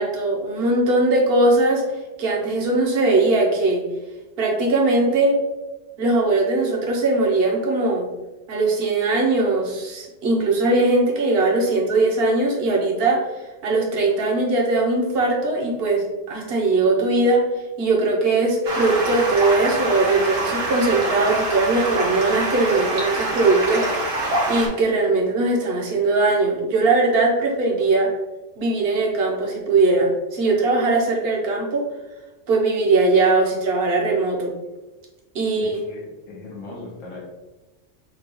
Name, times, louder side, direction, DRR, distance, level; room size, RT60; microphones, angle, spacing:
voice 1, 0.0-1.8 2.2-3.8 4.4-5.4 6.0-8.1 8.5-13.2 13.6-17.4 17.8-23.9 24.5-28.1 28.6-31.8 32.5-34.5 35.3-35.8, right 2 dB, 50° right, -1 dB, 1.0 m, -20 dB
Stream, 18.6-24.7, right 2 dB, 75° right, 1.4 m, -25 dB
voice 2, 35.6-37.2, left 2 dB, 85° left, -4 dB, 1.4 m, -38 dB
6.0 x 2.3 x 2.9 m, 1.1 s
omnidirectional pair, 1.3 m